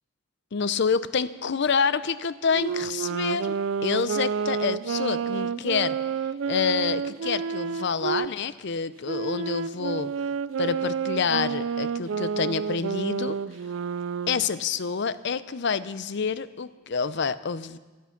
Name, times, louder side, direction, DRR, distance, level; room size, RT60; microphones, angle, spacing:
voice 1, 0.5-6.0 6.5-10.1 10.6-13.4 14.3-17.8, left 5 dB, 60° left, 15 dB, 0.6 m, -27 dB
Wind instrument woodwind instrument, 2.5-8.3 9.0-14.5, right 6 dB, 70° right, 0.4 m, -29 dB
24.0 x 8.5 x 5.8 m, 1.3 s
head